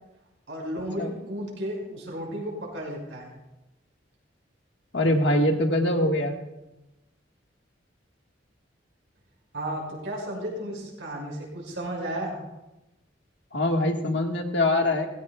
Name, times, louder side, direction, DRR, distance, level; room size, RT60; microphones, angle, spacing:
voice 1, 0.5-3.3 9.5-12.4, right 1 dB, 85° right, -2 dB, 5.8 m, -33 dB
voice 2, 4.9-6.3 13.5-15.1, left 1 dB, 70° left, 2 dB, 1.7 m, -23 dB
19.0 x 16.0 x 2.4 m, 0.99 s
head